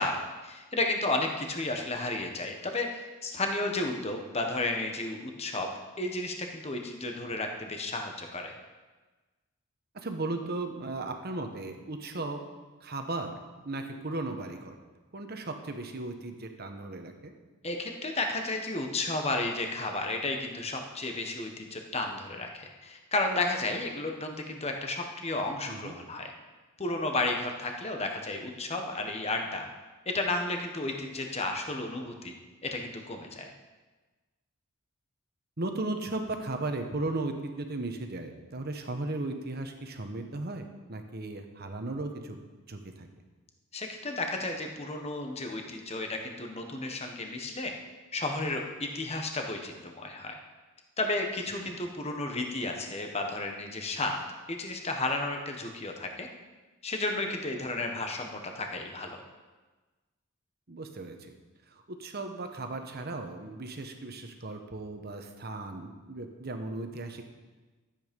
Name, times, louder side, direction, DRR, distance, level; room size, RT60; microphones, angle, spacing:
voice 1, 0.0-5.7 6.0-8.5 17.6-26.3 26.8-29.7 30.0-32.3 32.6-33.5 43.7-47.7 48.1-50.4 51.0-54.2 54.5-56.3 56.8-59.2, left 2 dB, 30° left, 3 dB, 1.3 m, -33 dB
voice 2, 9.9-12.4 12.8-13.4 13.6-14.8 15.1-17.3 25.7-25.9 35.6-42.4 42.7-43.1 60.7-61.3 61.7-67.2, right 2 dB, 45° right, 5 dB, 1.2 m, -36 dB
13.0 x 8.7 x 5.3 m, 1.3 s
head